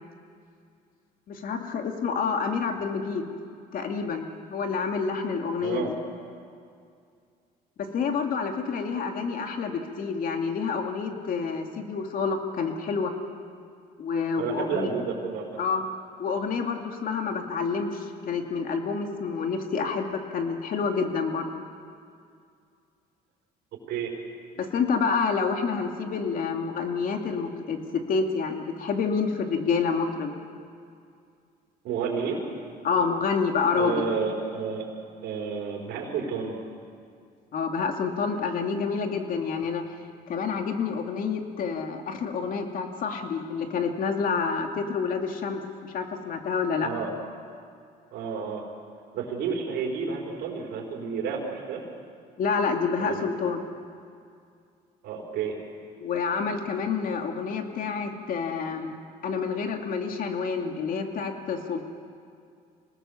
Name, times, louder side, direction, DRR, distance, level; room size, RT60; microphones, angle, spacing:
voice 1, 1.3-3.3 3.7-5.9 7.9-13.1 14.0-14.9 15.6-15.9 16.2-21.6 24.6-30.3 32.8-34.1 37.5-39.8 40.3-46.9 52.4-53.6 56.0-58.9 59.2-61.8, left 5 dB, 55° left, 4 dB, 2.6 m, -28 dB
voice 2, 5.6-5.9 14.3-15.6 23.9-24.1 31.8-32.4 33.7-34.9 35.2-36.6 46.8-47.1 48.1-48.6 49.1-51.8 53.0-53.3 55.0-55.5, right 6 dB, 80° right, -2 dB, 4.7 m, -31 dB
26.5 x 19.0 x 7.2 m, 2.3 s
cardioid pair, 110°, 17 cm